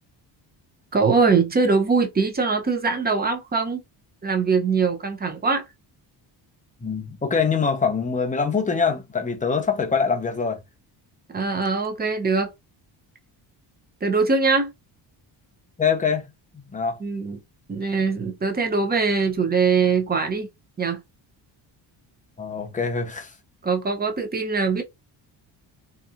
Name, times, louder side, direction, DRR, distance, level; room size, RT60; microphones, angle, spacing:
voice 1, 0.9-3.8 4.2-5.6 11.3-12.5 14.0-14.7 17.0-17.4 17.7-20.5 20.8-21.0 23.6-24.8, right 4 dB, 20° right, 0.6 m, -22 dB
voice 2, 6.8-10.6 15.8-16.3 16.7-17.0 22.4-23.3, left 5 dB, 15° left, 0.7 m, -24 dB
2.8 x 2.3 x 2.4 m
cardioid pair, 110°, 45 cm